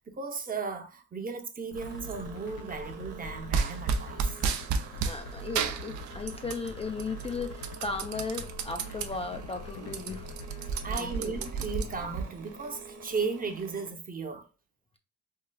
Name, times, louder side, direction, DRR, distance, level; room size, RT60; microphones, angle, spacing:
voice 1, 0.1-4.4 10.7-14.5, right 5 dB, 30° right, 0.7 m, -36 dB
sound 1, 1.7-12.2, left 2 dB, 90° left, 0.6 m, -43 dB
sound 2, 1.7-13.9, right 5 dB, 55° right, 1.3 m, -48 dB
sound 3, 3.5-5.2 5.5-6.7 7.0-9.1 9.5-9.6 9.8-12.2, right 6 dB, 70° right, 0.6 m, -31 dB
voice 2, 5.0-10.3 10.9-11.3, left 4 dB, 20° left, 0.3 m, -36 dB
4.5 x 2.3 x 2.2 m
cardioid pair, 90°, 30 cm